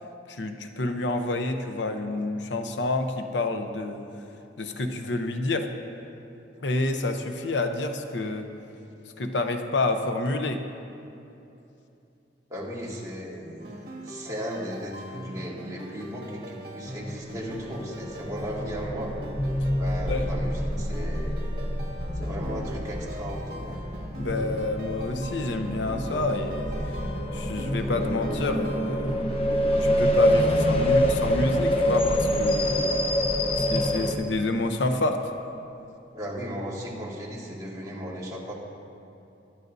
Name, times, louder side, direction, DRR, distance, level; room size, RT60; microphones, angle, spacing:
voice 1, 0.3-4.0 4.6-5.7 6.6-8.5 9.2-10.6 20.1-20.3 24.2-27.1 27.3-29.3 29.8-33.0 33.6-35.3, left 2 dB, 80° left, 6 dB, 0.8 m, -28 dB
voice 2, 12.5-19.1 19.7-21.3 22.1-23.8 36.1-38.5, equal, 20° right, -5 dB, 2.1 m, -36 dB
sound 1, 13.6-30.9, equal, 55° right, 2.1 m, -42 dB
sound 2, 17.2-34.1, equal, 35° left, 0.9 m, -26 dB
21.5 x 11.5 x 2.7 m, 2.8 s
head